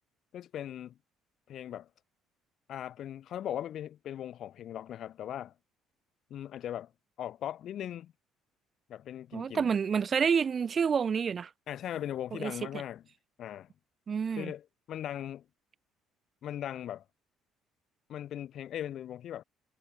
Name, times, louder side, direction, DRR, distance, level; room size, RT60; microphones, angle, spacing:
voice 1, 0.3-1.0 1.5-1.9 2.7-5.5 6.3-6.9 7.2-8.1 8.9-9.7 11.7-13.0 13.4-13.7 14.3-15.4 16.4-17.0 18.1-19.4, left 11 dB, 55° left, 1.0 m, -39 dB
voice 2, 9.3-11.5 12.4-12.5 14.1-14.5, right 6 dB, 40° right, 0.4 m, -28 dB
hypercardioid pair, 55°, 0 cm